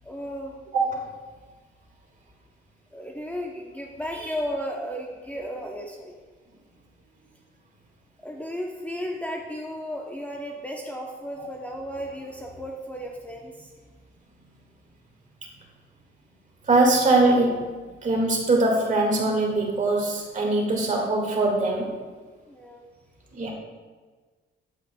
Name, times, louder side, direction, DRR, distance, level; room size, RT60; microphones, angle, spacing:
voice 1, 0.0-0.7 2.9-6.2 8.2-13.7 22.5-22.8, equal, 5° left, 0 dB, 0.7 m, -34 dB
voice 2, 0.7-1.1 11.4-11.5 16.7-21.9 23.3-23.5, right 2 dB, 40° right, 0 dB, 1.8 m, -22 dB
8.2 x 7.6 x 2.2 m, 1.4 s
cardioid pair, 90°, 20 cm